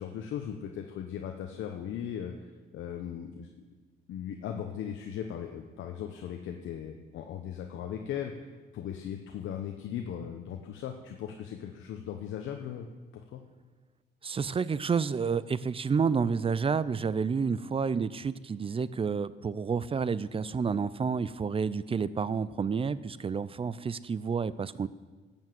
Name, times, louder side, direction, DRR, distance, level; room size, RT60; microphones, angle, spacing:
voice 1, 0.0-2.3 2.7-3.5 4.1-8.3 8.7-12.9 13.1-13.4, left 9 dB, 75° left, 4 dB, 0.9 m, -38 dB
voice 2, 14.2-24.9, right 5 dB, 30° right, 17 dB, 0.4 m, -30 dB
12.0 x 7.2 x 7.8 m, 1.4 s
cardioid pair, 90°, 20 cm